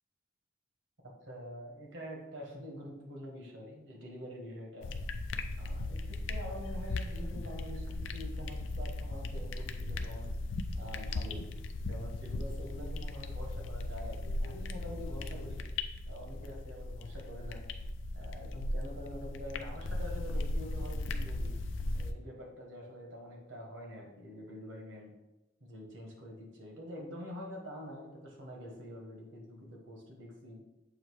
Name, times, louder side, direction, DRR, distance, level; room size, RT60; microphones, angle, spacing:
voice 1, 1.2-4.9 5.6-10.3 10.7-11.5 11.9-15.6 16.1-17.6 18.1-21.6 21.9-25.1 25.6-30.6, equal, 75° right, -1 dB, 1.5 m, -46 dB
sound 1, 4.8-22.1, left 2 dB, 75° left, 0.4 m, -37 dB
7.5 x 2.7 x 4.7 m, 0.98 s
head